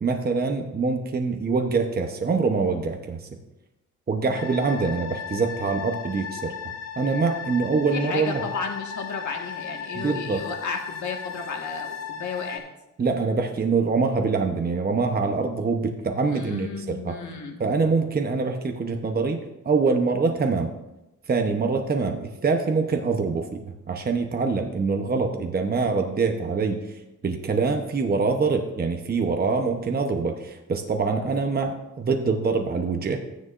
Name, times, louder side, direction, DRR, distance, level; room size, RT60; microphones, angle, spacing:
voice 1, 0.0-3.4 4.1-6.5 7.0-8.4 9.9-10.5 13.0-17.2 17.6-20.7 21.3-33.2, right 4 dB, 30° right, 4 dB, 0.8 m, -24 dB
sound 1, 4.3-12.6, left 7 dB, 85° left, 2.9 m, -36 dB
voice 2, 7.9-12.6 16.3-17.6, left 5 dB, 65° left, 1 dB, 1.7 m, -33 dB
13.0 x 9.7 x 2.5 m, 0.95 s
cardioid pair, 115°, 31 cm